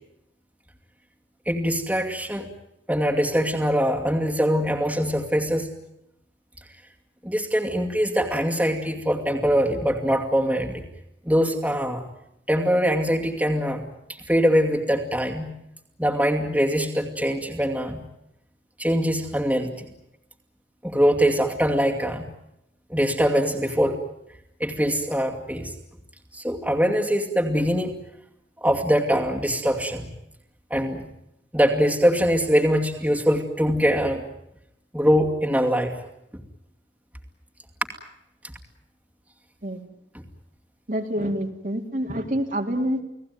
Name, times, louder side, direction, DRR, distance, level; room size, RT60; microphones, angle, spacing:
voice 1, 1.5-2.5 2.9-5.7 7.2-10.8 11.3-12.0 12.5-13.8 14.1-15.5 16.0-18.0 18.8-19.9 20.8-22.3 22.9-24.0 24.6-25.7 26.3-28.0 28.6-30.0 30.7-31.0 31.5-34.2 34.9-35.9 36.3-36.4, equal, 10° right, 1 dB, 2.4 m, -23 dB
voice 2, 40.9-43.0, equal, 45° right, 3 dB, 2.5 m, -27 dB
30.0 x 18.5 x 9.3 m, 0.82 s
head